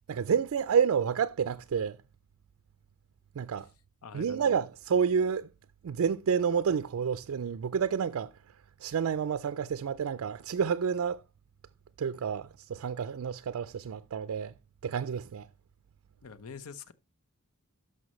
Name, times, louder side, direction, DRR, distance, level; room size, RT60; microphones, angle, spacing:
voice 1, 0.1-2.0 3.4-3.7 4.1-5.5 5.8-8.3 8.8-11.2 12.0-14.5 14.8-15.5, right 7 dB, 65° right, 0.4 m, -29 dB
voice 2, 4.0-4.5 16.2-16.9, left 5 dB, 75° left, 0.7 m, -45 dB
12.5 x 5.5 x 3.0 m
head